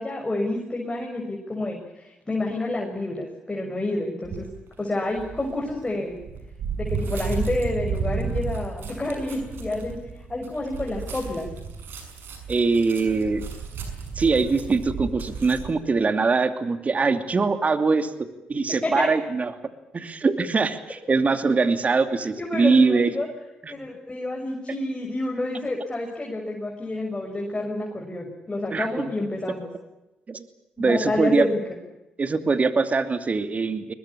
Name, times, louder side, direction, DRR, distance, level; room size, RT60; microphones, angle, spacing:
voice 1, 0.0-4.5 4.8-6.2 6.8-11.5 18.8-19.1 22.2-23.3 23.7-29.7 30.8-31.5, left 2 dB, 20° left, 0 dB, 6.5 m, -29 dB
sound 1, 4.2-4.6 5.2-15.7, right 5 dB, 70° right, 6.4 m, -33 dB
voice 2, 12.5-13.4 14.2-19.5 19.9-23.1 28.7-29.0 30.3-30.5 30.8-31.5 32.2-33.9, right 4 dB, 40° right, 9 dB, 2.7 m, -22 dB
22.5 x 21.0 x 8.6 m, 0.98 s
supercardioid pair, 55°, 4 cm